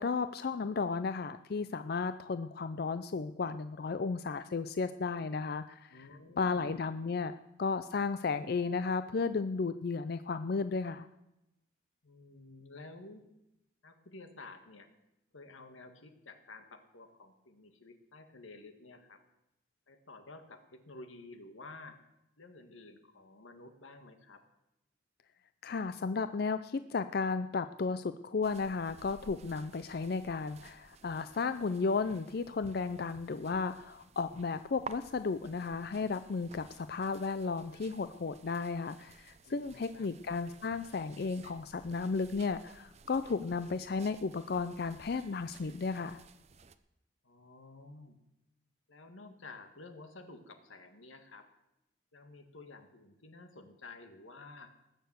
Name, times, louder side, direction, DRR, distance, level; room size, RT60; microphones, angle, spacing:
voice 1, 0.0-6.0 6.4-7.3 7.6-11.1 25.6-46.2, left 4 dB, 50° left, 12 dB, 0.4 m, -34 dB
voice 2, 5.9-6.8 12.0-13.3 13.8-14.9 15.3-19.2 19.9-22.0 22.4-24.5 39.5-40.1 47.2-48.2 48.9-51.5 52.1-54.7, left 3 dB, 90° left, 7 dB, 1.7 m, -52 dB
sound 1, 28.4-46.8, right 4 dB, 35° right, 0.6 m, -54 dB
19.0 x 6.8 x 8.0 m, 0.89 s
head